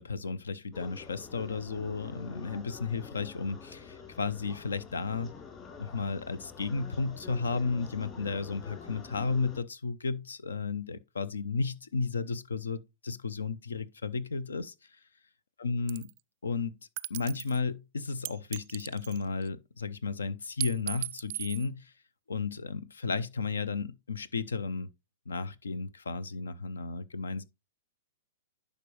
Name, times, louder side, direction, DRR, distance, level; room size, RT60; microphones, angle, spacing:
voice 1, 0.0-5.3 5.8-14.7 15.6-16.1 16.4-16.7 17.1-21.9 22.3-24.9 25.3-27.4, left 4 dB, 75° left, 0.7 m, -33 dB
sound 1, 0.7-9.6, left 5 dB, 30° left, 3.7 m, -47 dB
sound 2, 15.9-16.2 17.0-17.6 18.3-19.5 20.6-21.7, right 20 dB, 50° right, 0.4 m, -37 dB
11.0 x 5.3 x 3.2 m
figure-of-eight pair, 105°, 0 cm